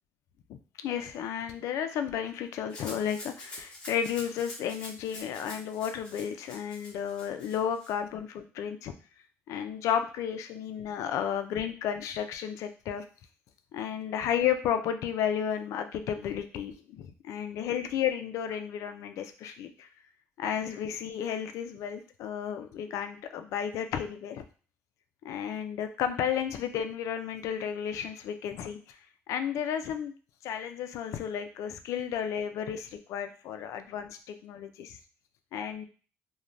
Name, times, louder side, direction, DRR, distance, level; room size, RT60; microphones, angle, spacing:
voice 1, 0.5-8.9 9.5-13.0 13.7-19.9 20.4-24.4 25.2-29.0 29.3-30.1 30.4-35.0 35.5-35.9, left 8 dB, 75° left, 8 dB, 0.3 m, -33 dB
Rattle (instrument), 2.7-7.9, left 1 dB, 20° left, 0.8 m, -46 dB
3.1 x 2.1 x 2.5 m, 0.38 s
cardioid pair, 165°, 5 cm